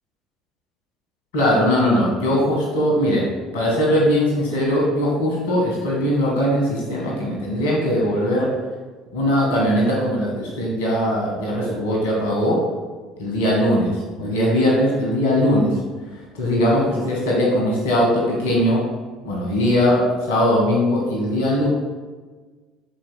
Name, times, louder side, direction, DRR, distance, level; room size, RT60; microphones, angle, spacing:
voice 1, 1.3-8.5 9.1-12.6 13.2-15.8 16.1-18.8 19.2-21.7, equal, 65° left, -2 dB, 1.6 m, -20 dB
11.0 x 4.6 x 2.2 m, 1.4 s
figure-of-eight pair, 60°, 0 cm